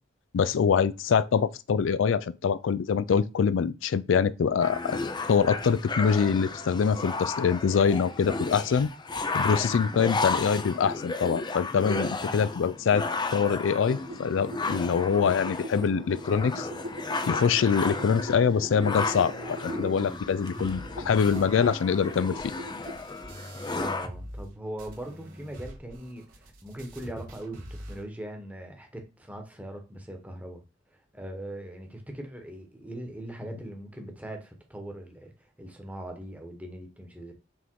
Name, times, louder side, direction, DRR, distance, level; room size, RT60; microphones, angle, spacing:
voice 1, 0.3-5.0 5.3-8.9 9.3-13.1 13.3-16.7 17.3-22.5, left 6 dB, 75° left, 0.4 m, -24 dB
sound 1, 4.6-24.1, left 3 dB, 25° left, 0.5 m, -34 dB
sound 2, 13.6-20.0 20.5-22.9, equal, 80° right, 1.3 m, -41 dB
sound 3, 20.0-24.5 24.8-28.0, equal, 50° right, 1.8 m, -44 dB
voice 2, 23.7-30.6 30.9-37.3, right 1 dB, 10° right, 1.2 m, -40 dB
6.1 x 3.5 x 4.6 m
head